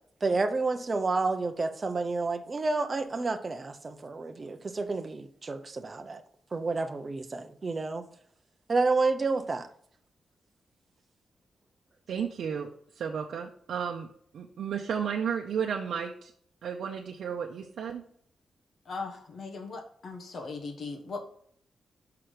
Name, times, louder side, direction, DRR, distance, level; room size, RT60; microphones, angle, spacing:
voice 1, 0.2-6.2 6.5-8.0 8.7-9.7, right 3 dB, 25° right, 7 dB, 0.7 m, -29 dB
voice 2, 12.1-12.7 12.9-14.1 14.3-16.3 16.6-18.0, right 7 dB, 75° right, 1 dB, 0.7 m, -33 dB
voice 3, 18.8-21.3, left 4 dB, 55° left, 3 dB, 1.2 m, -39 dB
6.0 x 5.8 x 5.0 m, 0.63 s
wide cardioid pair, 170°, 0 cm